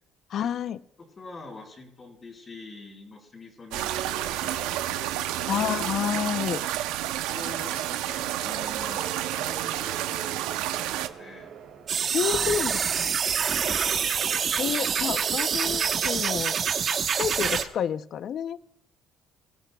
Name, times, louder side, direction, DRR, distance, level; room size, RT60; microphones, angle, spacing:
voice 1, 0.3-0.8 5.5-6.6 12.1-13.1 14.6-16.6 17.2-18.6, left 9 dB, 60° left, 14 dB, 0.6 m, -29 dB
voice 2, 1.0-4.7 6.5-6.7 7.3-10.5 10.8-11.5 12.0-13.8, left 3 dB, 30° left, 0 dB, 4.7 m, -45 dB
sound 1, 3.7-11.1, right 13 dB, 90° right, 0.7 m, -30 dB
sound 2, 8.0-16.4, right 7 dB, 70° right, 4.5 m, -44 dB
sound 3, 11.9-17.6, right 7 dB, 50° right, 1.1 m, -26 dB
22.5 x 15.5 x 2.3 m, 0.71 s
cardioid pair, 95°, 0 cm